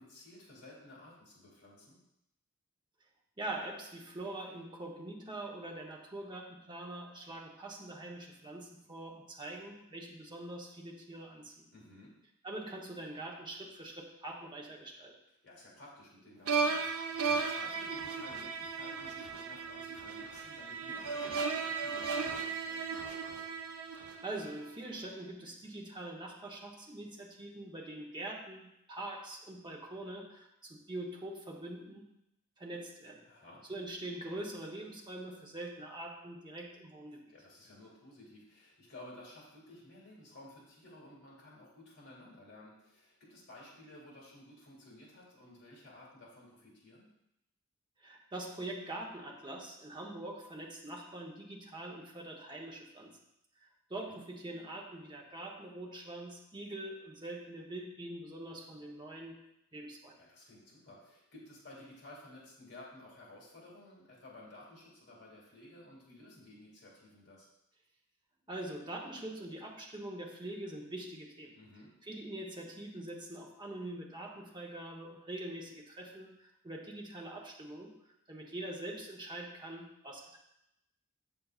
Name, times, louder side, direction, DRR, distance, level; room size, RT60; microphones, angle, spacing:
voice 1, 0.0-2.0 11.7-12.2 15.4-23.0 33.2-33.6 37.3-47.1 54.1-54.2 60.2-67.5 71.5-71.9, left 1 dB, 55° left, -4 dB, 2.1 m, -54 dB
voice 2, 3.4-11.7 12.4-15.1 23.9-32.1 32.6-33.3 33.7-37.3 48.0-53.2 53.6-60.2 68.5-71.6 72.0-78.0 78.3-80.4, right 1 dB, 20° right, 0 dB, 0.9 m, -44 dB
sound 1, 16.5-24.7, right 5 dB, 85° right, 0.7 m, -35 dB
7.3 x 6.8 x 2.4 m, 0.84 s
head